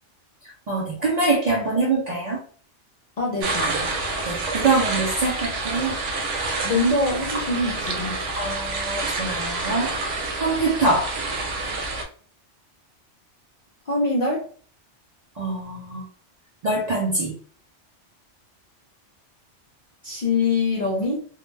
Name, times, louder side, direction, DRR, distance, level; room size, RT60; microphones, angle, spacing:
voice 1, 0.7-2.4 4.3-6.0 8.3-9.9 10.4-11.1 15.4-16.0 16.6-17.3, right 3 dB, 55° right, -2 dB, 0.5 m, -24 dB
voice 2, 3.2-3.9 6.5-8.2 13.9-14.5 20.0-21.3, left 2 dB, 60° left, -2 dB, 0.4 m, -24 dB
sound 1, 3.4-12.0, right 3 dB, 90° right, 1.0 m, -28 dB
2.2 x 2.1 x 3.1 m, 0.43 s
omnidirectional pair, 1.2 m